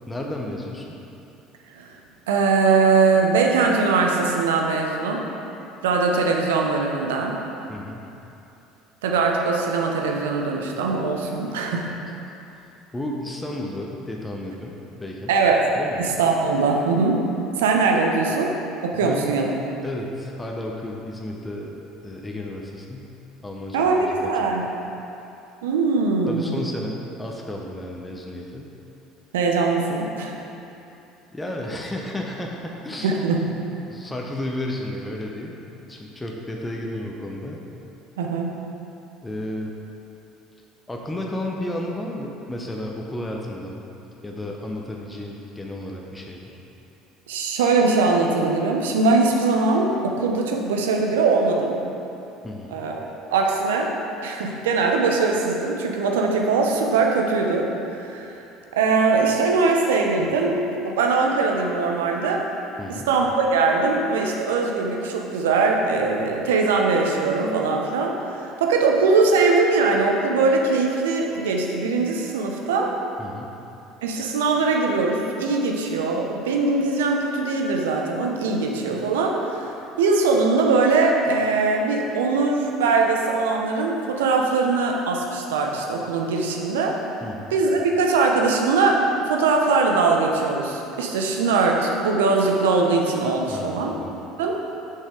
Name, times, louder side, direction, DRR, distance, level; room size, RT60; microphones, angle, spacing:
voice 1, 0.1-1.0 7.7-8.0 12.9-15.3 15.8-16.1 18.9-19.4 19.8-23.1 23.4-24.7 26.3-28.7 31.3-33.2 33.9-35.6 35.9-37.6 39.2-39.8 40.9-43.9 44.2-46.6 52.4-52.8 62.8-63.1 73.2-73.5 87.2-87.5 93.5-94.1, left 1 dB, 15° left, -1 dB, 0.8 m, -33 dB
voice 2, 2.3-5.2 5.8-7.4 9.0-11.9 15.3-15.7 16.0-17.3 17.6-18.5 18.8-19.4 23.7-24.7 25.6-26.6 29.3-30.4 33.0-33.4 38.2-38.5 47.3-51.8 52.7-53.0 53.3-53.9 54.2-58.3 58.7-62.4 63.1-68.2 68.6-72.9 74.0-79.7 80.0-87.0 87.5-93.9 94.4-94.6, right 4 dB, 80° right, 1 dB, 0.7 m, -21 dB
6.3 x 5.6 x 3.7 m, 2.9 s
hypercardioid pair, 70°, 0 cm